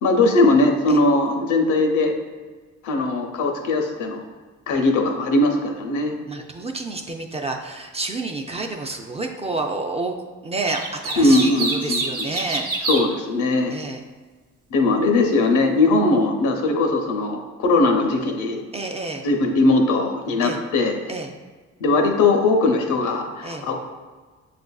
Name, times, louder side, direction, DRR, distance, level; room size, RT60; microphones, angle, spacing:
voice 1, 0.0-2.2 2.8-4.2 4.7-6.2 11.2-12.3 12.9-13.8 14.7-18.6 19.2-21.0 21.8-23.7, left 2 dB, 80° left, 3 dB, 0.7 m, -19 dB
voice 2, 6.3-10.1 10.4-12.7 13.7-14.0 18.7-19.2 20.4-20.6 21.1-21.3 23.4-23.7, right 3 dB, 20° right, 3 dB, 0.3 m, -29 dB
sound 1, 10.7-13.0, right 3 dB, 50° right, 0.9 m, -26 dB
6.6 x 2.5 x 2.3 m, 1.4 s
cardioid pair, 90°, 30 cm